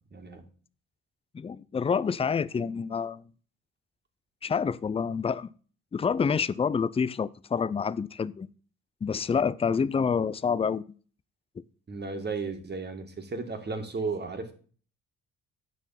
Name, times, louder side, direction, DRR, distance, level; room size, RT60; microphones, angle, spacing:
voice 1, 0.1-0.5 11.9-14.5, right 4 dB, 35° right, 1.8 m, -34 dB
voice 2, 1.3-3.2 4.4-5.5 5.9-8.5 9.0-10.9, left 6 dB, 20° left, 0.4 m, -28 dB
9.2 x 6.1 x 5.7 m
cardioid pair, 90°, 30 cm